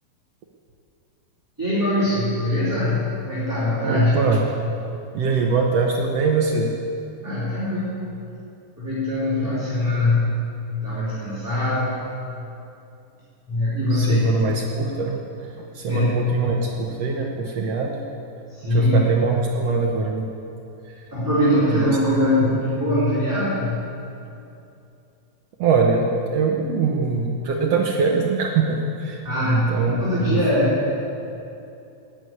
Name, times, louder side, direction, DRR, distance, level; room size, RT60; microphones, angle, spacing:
voice 1, 1.6-4.2 7.2-8.0 8.8-10.5 10.8-11.9 13.5-14.3 15.9-16.1 18.5-19.0 21.1-23.8 29.2-30.9, left 1 dB, 5° right, -11 dB, 3.0 m, -22 dB
voice 2, 3.8-4.4 5.1-6.7 13.9-15.2 15.6-18.1 18.7-20.3 21.7-21.9 22.4-22.6 25.6-30.4, right 4 dB, 70° right, 0 dB, 1.6 m, -23 dB
11.5 x 9.8 x 9.2 m, 2.6 s
omnidirectional pair, 4.1 m